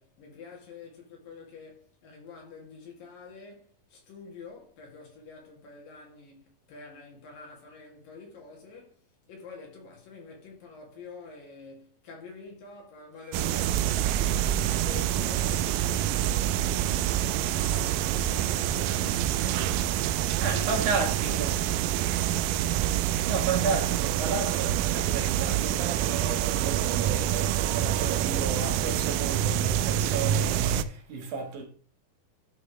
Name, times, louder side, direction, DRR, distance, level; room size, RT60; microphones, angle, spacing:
voice 1, 0.0-23.3, left 4 dB, 75° left, 4.0 m, -48 dB
Harp, 13.1-25.9, right 4 dB, 45° right, 1.0 m, -50 dB
sound 1, 13.3-30.8, right 11 dB, 80° right, 2.1 m, -26 dB
voice 2, 20.4-21.6 23.3-31.6, right 4 dB, 65° right, 2.8 m, -33 dB
12.0 x 6.0 x 3.2 m
omnidirectional pair, 4.1 m